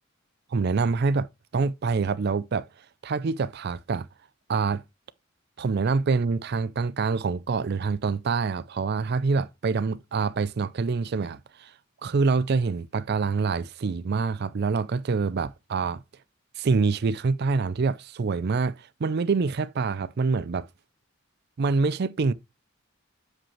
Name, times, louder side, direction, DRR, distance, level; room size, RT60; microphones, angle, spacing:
voice 1, 0.5-1.3 1.5-2.7 3.0-4.1 4.5-4.8 5.6-11.7 12.0-16.0 16.6-18.7 19.0-20.7 21.6-22.3, right 4 dB, 50° right, 0.4 m, -26 dB
7.3 x 5.1 x 3.1 m
head